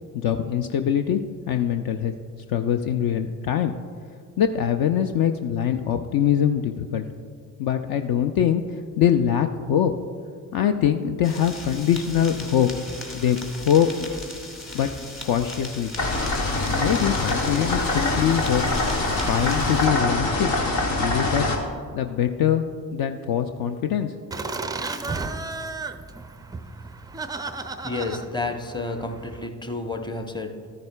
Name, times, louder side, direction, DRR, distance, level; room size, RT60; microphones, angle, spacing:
voice 1, 0.1-1.2 1.5-2.1 2.5-3.7 4.4-7.0 7.6-9.9 10.5-12.7 13.1-13.4 13.7-13.9 14.7-14.9 15.2-15.9 16.6-18.6 19.3-20.5 21.0-21.5 21.9-22.6 22.9-24.1, left 9 dB, 50° left, 7 dB, 0.5 m, -23 dB
sound 1, 11.2-19.9, left 2 dB, 25° left, 1.9 m, -38 dB
sound 2, 16.0-21.5, left 2 dB, 75° left, 1.2 m, -24 dB
Laughter, 24.3-29.5, right 3 dB, 10° right, 0.4 m, -34 dB
voice 2, 27.8-30.7, left 3 dB, 10° left, 6 dB, 0.8 m, -30 dB
13.5 x 10.5 x 2.3 m, 2.1 s
figure-of-eight pair, 40°, 47 cm